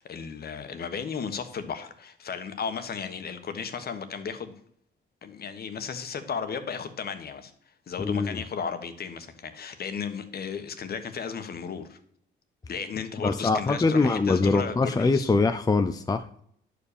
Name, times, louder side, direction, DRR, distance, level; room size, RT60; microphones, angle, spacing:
voice 1, 0.0-4.6 5.2-7.5 7.9-12.0 12.7-15.3, left 6 dB, 50° left, 1.3 m, -34 dB
voice 2, 8.0-8.4 13.2-16.4, left 3 dB, 20° left, 0.5 m, -23 dB
10.5 x 5.0 x 6.8 m
cardioid pair, 90°, 20 cm